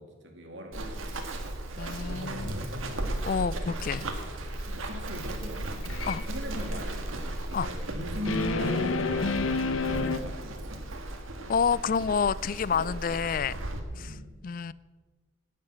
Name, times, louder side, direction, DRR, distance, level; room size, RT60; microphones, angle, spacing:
voice 1, 0.0-1.5 1.9-3.3 3.9-10.8 13.9-14.3, equal, 60° right, 2.4 m, -42 dB
Run, 0.7-13.8, right 1 dB, 85° right, 1.7 m, -36 dB
voice 2, 1.8-2.6 3.2-4.0 6.1-6.2 7.5-7.7 11.5-13.6 14.0-14.2 14.4-14.7, left 6 dB, 40° left, 0.3 m, -28 dB
sound 1, 5.8-6.2 8.2-10.2, left 3 dB, 80° left, 0.9 m, -28 dB
10.5 x 8.9 x 9.0 m
head